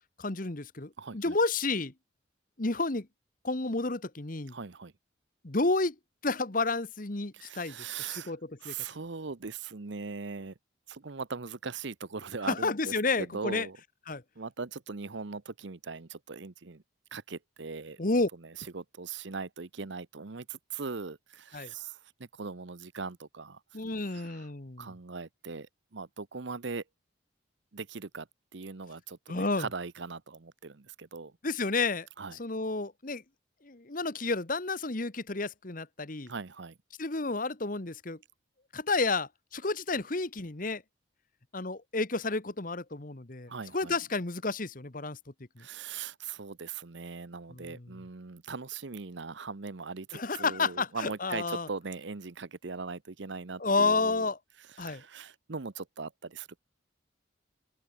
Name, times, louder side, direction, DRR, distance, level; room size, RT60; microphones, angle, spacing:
voice 1, 0.2-1.9 2.6-3.1 3.4-4.5 5.4-5.9 6.2-7.8 8.1-8.7 12.4-13.7 14.1-14.2 18.0-18.3 21.5-21.7 23.7-24.9 29.3-29.7 31.4-32.1 32.4-33.2 33.6-36.3 37.0-38.2 38.7-40.8 41.5-45.2 45.6-45.7 47.5-47.9 50.1-51.7 53.6-54.4 54.8-55.0, left 3 dB, 45° left, 1.3 m, -31 dB
voice 2, 1.0-1.4 4.5-4.9 7.3-8.3 8.6-10.5 10.9-13.8 14.4-16.8 17.1-18.0 18.4-23.6 24.1-24.5 24.8-26.8 27.7-28.3 28.5-31.3 32.2-32.4 36.3-36.8 43.5-43.9 45.6-54.3 54.7-56.6, right 4 dB, 65° right, 0.9 m, -40 dB
open air
head